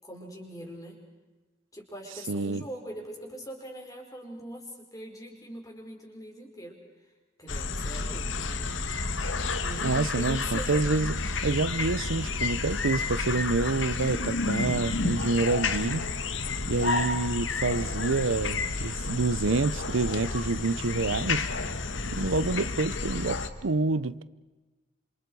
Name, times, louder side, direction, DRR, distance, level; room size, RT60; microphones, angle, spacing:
voice 1, 0.0-1.0 1.7-6.7 7.0-7.1 7.4-8.8 9.6-10.9, equal, 20° left, 1 dB, 4.9 m, -41 dB
voice 2, 2.3-2.6 9.8-11.1 11.4-16.1 16.7-21.5 22.1-24.2, right 3 dB, 90° right, 16 dB, 0.7 m, -27 dB
sound 1, 7.5-23.5, left 3 dB, 80° left, 1.5 m, -31 dB
28.5 x 27.0 x 4.8 m, 1.2 s
head